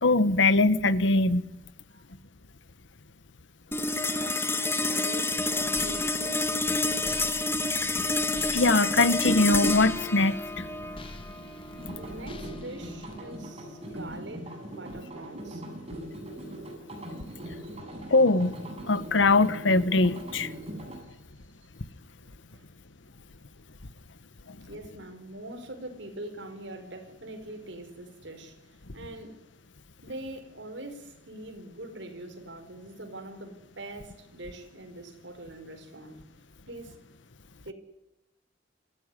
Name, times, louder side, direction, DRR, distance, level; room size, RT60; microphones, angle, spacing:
voice 1, 0.0-1.5 7.7-8.0 8.5-10.4 18.1-18.6 18.9-20.5, left 3 dB, 80° left, 1.2 m, -22 dB
sound 1, 3.7-14.3, left 2 dB, 15° left, 1.8 m, -29 dB
voice 2, 4.1-6.5 11.9-15.7 17.1-18.0 20.6-21.2 21.6-21.7 22.5-22.7 24.7-29.4 30.0-36.2 36.7-37.0 37.6-37.7, right 1 dB, 70° right, 5.0 m, -43 dB
sound 2, 5.4-13.2, left 1 dB, 30° left, 2.2 m, -44 dB
sound 3, 11.8-21.0, right 1 dB, 35° right, 7.0 m, -41 dB
26.5 x 16.0 x 9.8 m
head